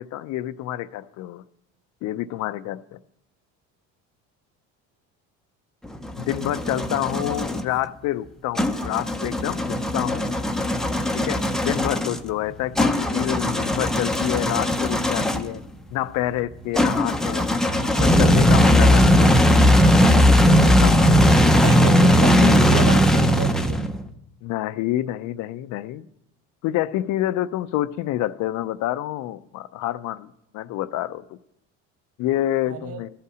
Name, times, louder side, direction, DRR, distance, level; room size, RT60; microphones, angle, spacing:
voice 1, 0.0-1.4 2.0-3.0 6.2-10.3 11.1-15.6 15.9-17.4 18.0-19.3 20.7-21.0 24.4-26.0 26.6-30.3 30.5-31.2 32.2-33.1, left 14 dB, 55° left, 0.5 m, -28 dB
sound 1, 5.8-7.6 8.6-15.6 16.7-24.0, left 1 dB, ahead, 0.5 m, -18 dB
voice 2, 21.5-23.8 32.7-33.0, right 7 dB, 40° right, 0.8 m, -32 dB
13.5 x 5.7 x 6.2 m
cardioid pair, 125°, 35 cm